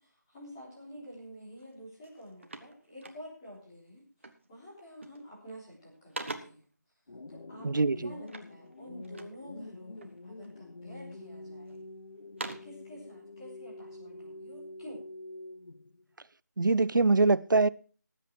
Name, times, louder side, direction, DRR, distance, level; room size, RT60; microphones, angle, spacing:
voice 1, 0.0-6.6 7.3-11.8 12.4-15.1, equal, 10° left, 3.8 m, -49 dB
sound 1, 1.6-1.7 2.0-3.6 4.2-4.5 4.9-5.4 5.7-6.7 8.2-9.4 10.0-10.6 11.1-11.8 12.1-12.8, right 2 dB, 40° right, 1.3 m, -44 dB
sound 2, 7.1-16.0, left 2 dB, 70° left, 0.7 m, -46 dB
voice 2, 7.6-8.1 16.6-17.7, right 3 dB, 75° right, 0.6 m, -23 dB
19.0 x 8.1 x 4.5 m
figure-of-eight pair, 175°, 10 cm